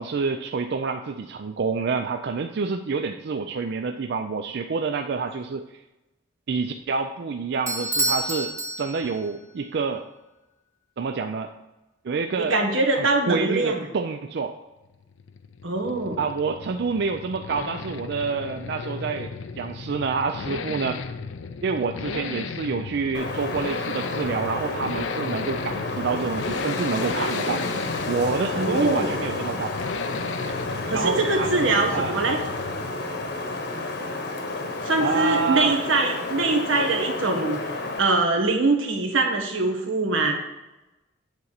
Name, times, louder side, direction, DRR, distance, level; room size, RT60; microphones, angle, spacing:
voice 1, 0.0-5.8 6.5-10.1 11.0-11.5 12.0-12.6 12.9-14.6 16.2-21.0 21.6-27.7 28.1-29.8 30.9-32.2 35.0-35.8, right 4 dB, 60° right, 6 dB, 0.4 m, -28 dB
Bell / Doorbell, 7.7-9.4, right 2 dB, 15° right, 0.7 m, -28 dB
voice 2, 12.4-13.8 15.6-16.2 28.6-29.1 30.9-32.4 34.8-40.4, right 3 dB, 90° right, 3 dB, 1.4 m, -23 dB
Accelerating revving vroom, 14.9-33.0 33.3-33.4, left 5 dB, 80° left, 0.5 m, -35 dB
Wind, 23.1-38.0, left 2 dB, 55° left, 1.1 m, -31 dB
8.1 x 4.2 x 6.4 m, 1.0 s
head